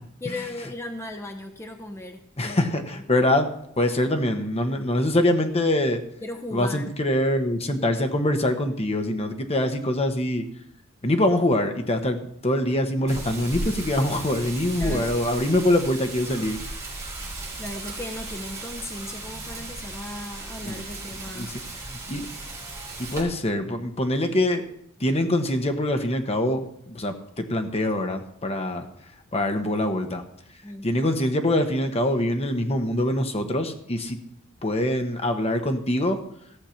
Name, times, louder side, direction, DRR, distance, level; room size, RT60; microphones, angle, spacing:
voice 1, 0.2-3.0 6.2-6.9 14.8-15.1 17.6-21.5 22.1-22.4 30.6-30.9, left 1 dB, 10° left, 4 dB, 0.8 m, -37 dB
voice 2, 2.4-3.5 3.8-6.0 6.5-10.4 11.0-16.6 20.6-20.8 21.3-21.6 21.8-22.2 23.0-24.6 25.0-28.9 29.3-30.2 30.8-34.2 34.6-36.2, left 1 dB, 30° left, 6 dB, 1.2 m, -24 dB
Wind, 13.1-23.2, right 2 dB, 15° right, 3.8 m, -36 dB
15.5 x 6.8 x 5.8 m, 0.74 s
head